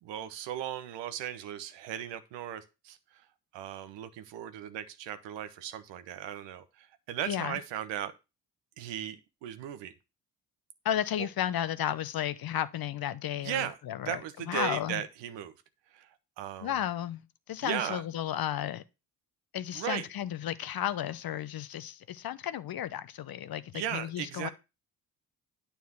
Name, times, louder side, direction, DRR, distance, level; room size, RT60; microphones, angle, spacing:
voice 1, 0.0-3.2 3.5-8.1 8.8-9.9 11.2-11.3 13.4-13.8 14.0-15.5 15.9-16.8 17.6-18.0 19.7-20.1 23.7-24.5, right 10 dB, 75° right, 1.1 m, -37 dB
voice 2, 7.3-7.6 10.8-14.2 14.5-15.0 16.6-18.8 19.5-24.5, left 11 dB, 55° left, 0.9 m, -33 dB
9.4 x 4.4 x 7.1 m
hypercardioid pair, 50°, 43 cm